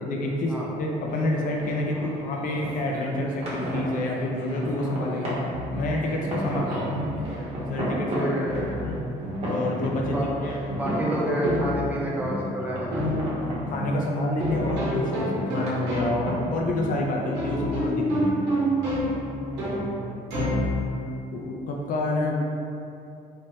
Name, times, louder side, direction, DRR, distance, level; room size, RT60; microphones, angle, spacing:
voice 1, 0.0-5.4 5.7-7.1 7.7-8.3 8.8-9.0 9.5-10.2 10.4-10.9 13.4-18.3 21.3-22.3, left 1 dB, 55° left, -1 dB, 0.4 m, -28 dB
sound 1, 0.6-19.9, right 1 dB, 40° right, 0.9 m, -36 dB
Female speech woman speaking / Yell, 2.4-3.6 3.9-5.4 5.7-7.6, right 2 dB, 65° right, 0.6 m, -47 dB
sound 2, 5.5-21.2, equal, 85° right, 0.9 m, -30 dB
voice 2, 8.1-9.1 10.1-13.1 19.4-20.0, right 1 dB, 10° right, -5 dB, 0.5 m, -30 dB
3.1 x 2.1 x 3.0 m, 2.7 s
cardioid pair, 110°, 17 cm